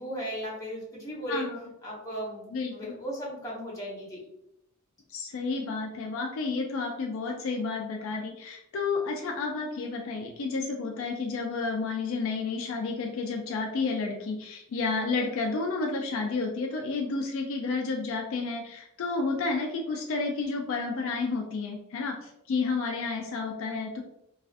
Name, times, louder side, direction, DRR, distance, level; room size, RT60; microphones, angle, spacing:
voice 1, 0.0-1.5 1.8-4.2, equal, 15° left, -5 dB, 0.8 m, -36 dB
voice 2, 1.3-1.6 2.5-2.9 5.1-24.0, left 4 dB, 60° left, 1 dB, 0.3 m, -31 dB
2.4 x 2.4 x 2.4 m, 0.80 s
head